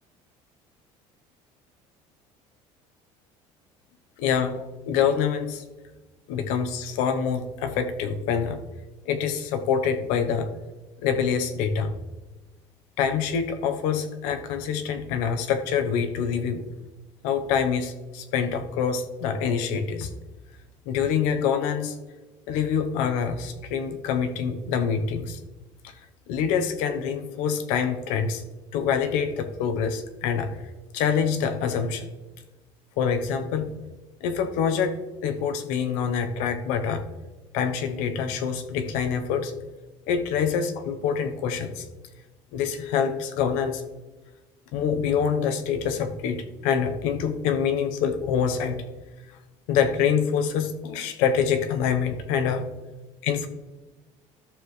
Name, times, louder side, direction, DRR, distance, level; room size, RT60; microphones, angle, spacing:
voice 1, 4.2-5.6 6.3-8.6 9.1-10.5 11.0-11.9 13.0-16.7 17.2-20.1 20.9-22.0 22.5-25.4 26.3-28.4 28.7-30.5 30.9-32.1 33.0-33.7 34.2-37.0 37.5-39.5 40.1-41.8 42.5-43.8 44.7-48.8 49.7-52.6 53.2-53.5, left 7 dB, 85° left, 7 dB, 1.0 m, -26 dB
13.5 x 6.8 x 3.2 m, 1.2 s
cardioid pair, 145°, 12 cm